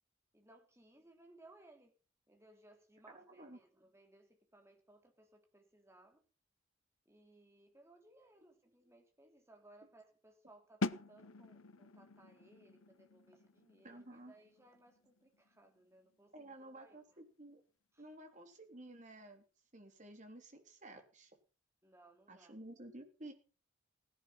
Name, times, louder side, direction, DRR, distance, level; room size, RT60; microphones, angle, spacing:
voice 1, 0.3-1.9 2.3-6.2 7.0-17.2 17.9-18.1 21.8-22.5, right 2 dB, 15° right, 4 dB, 3.2 m, -64 dB
voice 2, 3.1-3.6 13.8-14.3 16.3-17.6 18.0-19.4 19.7-21.3 22.3-23.3, right 1 dB, 35° right, 5 dB, 3.6 m, -53 dB
sound 1, 10.8-16.5, left 3 dB, 90° left, 0.8 m, -45 dB
17.0 x 11.0 x 5.7 m, 0.37 s
head